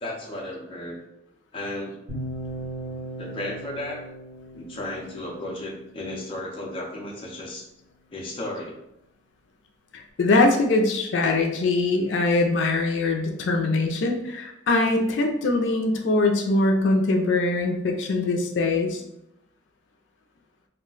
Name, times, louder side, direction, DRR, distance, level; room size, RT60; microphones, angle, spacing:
voice 1, 0.0-1.0 1.5-1.9 3.2-4.0 4.5-7.7 8.1-8.8, left 1 dB, 30° left, -2 dB, 0.6 m, -34 dB
sound 1, 2.1-6.2, right 1 dB, 75° right, 1.2 m, -37 dB
voice 2, 9.9-19.0, left 2 dB, 85° left, 2 dB, 0.4 m, -22 dB
2.4 x 2.1 x 3.7 m, 0.83 s
head